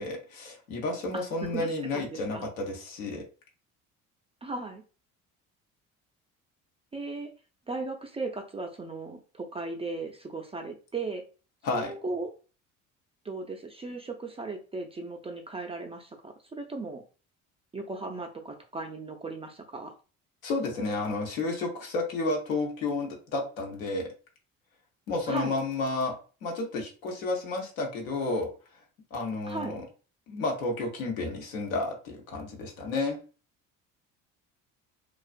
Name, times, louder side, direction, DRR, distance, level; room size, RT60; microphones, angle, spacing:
voice 1, 0.0-3.2 11.6-11.9 20.4-24.1 25.1-26.2 26.4-28.5 29.1-29.8 30.3-33.2, left 3 dB, 85° left, 1 dB, 0.8 m, -31 dB
voice 2, 1.1-2.5 4.4-4.8 6.9-7.3 7.7-11.2 11.7-12.3 13.2-17.0 17.7-19.9 25.3-25.6 29.5-29.8, right 3 dB, 15° right, 3 dB, 0.3 m, -37 dB
2.4 x 2.3 x 2.4 m, 0.36 s
hypercardioid pair, 60°, 41 cm